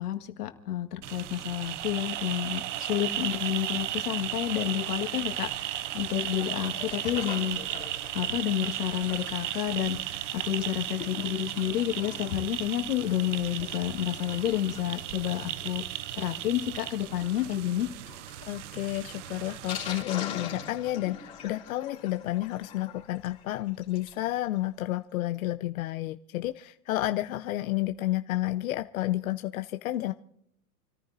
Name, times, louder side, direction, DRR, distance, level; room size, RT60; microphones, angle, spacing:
voice 1, 0.0-7.6 8.1-15.8 16.1-17.9, left 12 dB, 90° left, 6 dB, 1.9 m, -30 dB
sound 1, 1.0-20.0, right 13 dB, 55° right, 0.6 m, -35 dB
Sink (filling or washing), 6.2-24.3 24.6-24.7 24.9-25.0 25.3-25.4, left 8 dB, 15° left, 3.4 m, -45 dB
voice 2, 18.4-30.1, left 15 dB, 65° left, 7 dB, 0.7 m, -31 dB
29.0 x 14.0 x 2.7 m, 0.76 s
supercardioid pair, 160°, 44 cm